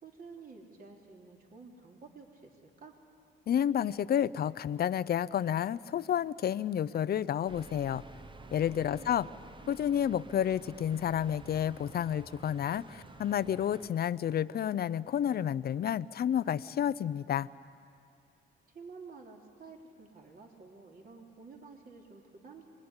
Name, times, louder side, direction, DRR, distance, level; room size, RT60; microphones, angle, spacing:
voice 1, 0.0-3.0 9.0-9.4 18.7-22.6, right 4 dB, 45° right, 1 dB, 3.4 m, -51 dB
voice 2, 3.5-8.0 8.5-9.3 9.7-17.5, left 9 dB, 50° left, 16 dB, 0.6 m, -30 dB
sound 1, 7.5-13.9, right 3 dB, 25° right, 1.0 m, -51 dB
25.5 x 22.0 x 9.8 m, 2.5 s
cardioid pair, 90°, 20 cm